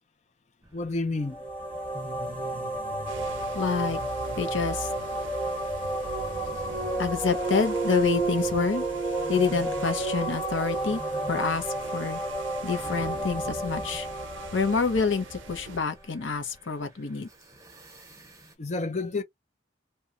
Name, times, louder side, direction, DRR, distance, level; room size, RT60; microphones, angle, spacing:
sound 1, 0.6-18.5, equal, 15° right, 0.7 m, -46 dB
voice 1, 0.7-1.4 18.6-19.2, left 3 dB, 35° left, 0.5 m, -29 dB
sound 2, 1.2-15.9, right 2 dB, 10° left, 1.0 m, -31 dB
sound 3, 3.1-15.8, right 4 dB, 80° right, 0.6 m, -44 dB
voice 2, 3.5-4.0 4.4-4.9 7.0-8.8 9.3-11.0 11.3-12.2 12.6-14.1 14.5-17.3, left 5 dB, 75° left, 0.8 m, -27 dB
2.8 x 2.3 x 2.5 m
head